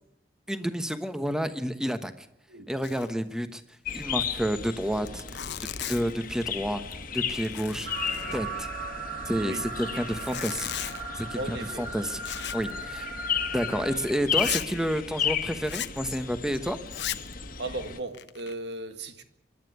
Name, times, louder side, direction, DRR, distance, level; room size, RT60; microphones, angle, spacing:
voice 1, 0.5-2.3 2.7-3.6 3.9-6.8 7.1-7.9 8.3-8.7 9.2-10.7 11.1-13.1 13.5-16.8, equal, 5° right, 1.1 m, -30 dB
Zipper (clothing), 2.8-3.2 3.5-3.6 3.9-4.0 4.6-4.7 5.0-6.2 6.8-7.0 7.3-8.7 10.0-11.0 12.2-12.7 13.0-13.2 13.7-13.8 14.3-14.7 15.6-16.0 16.9-17.3 17.9-18.5, left 11 dB, 75° left, 0.9 m, -36 dB
sound 1, 3.9-18.0, left 7 dB, 50° left, 1.7 m, -35 dB
sound 2, 7.8-13.9, right 2 dB, 35° right, 5.1 m, -38 dB
voice 2, 9.3-10.0 11.3-12.1 17.6-19.2, right 2 dB, 75° right, 1.8 m, -37 dB
24.5 x 11.5 x 9.5 m
head